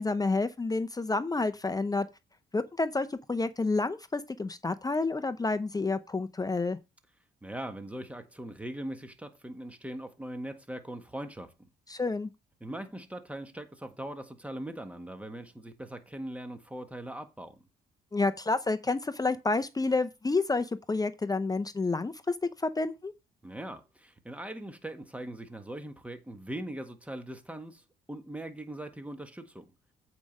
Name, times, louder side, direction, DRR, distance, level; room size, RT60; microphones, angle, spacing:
voice 1, 0.0-2.1 2.5-6.8 11.9-12.3 18.1-22.3 22.6-23.1, left 3 dB, 20° left, 0.6 m, -29 dB
voice 2, 7.4-11.7 12.6-17.6 23.4-29.7, right 1 dB, 5° right, 1.6 m, -41 dB
8.4 x 4.9 x 5.3 m
cardioid pair, 90°, 20 cm